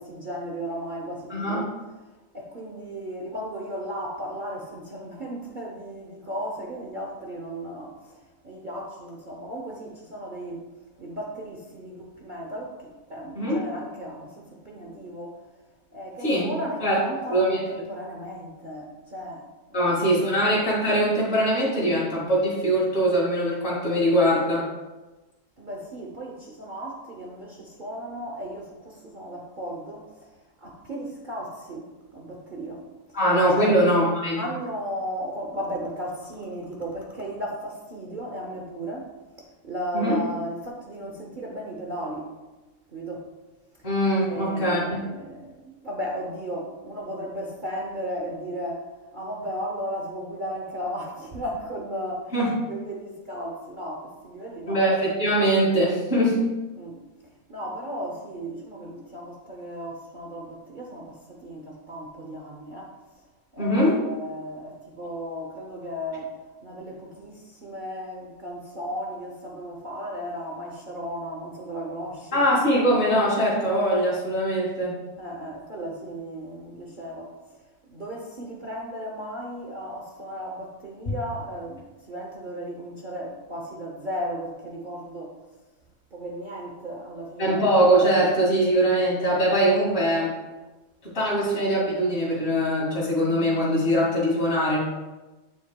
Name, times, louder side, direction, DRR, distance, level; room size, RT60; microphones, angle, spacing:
voice 1, 0.0-1.7 2.3-8.2 8.4-10.7 11.0-15.4 15.9-20.6 25.6-30.3 30.6-32.9 33.5-33.7 34.3-39.1 39.4-42.4 42.9-43.3 44.3-54.8 56.8-62.9 63.5-72.6 75.2-77.6 77.9-85.4 86.1-87.7, equal, 40° right, -1 dB, 0.7 m, -35 dB
voice 2, 1.3-1.6 13.3-13.6 16.2-16.5 16.8-17.0 17.3-17.6 19.7-24.7 33.1-34.4 39.9-40.2 43.8-45.0 52.3-52.5 54.7-56.4 63.6-63.9 72.3-74.9 87.4-90.3 91.1-94.8, equal, 40° left, -7 dB, 2.2 m, -22 dB
7.4 x 7.0 x 2.3 m, 1.2 s
omnidirectional pair, 1.6 m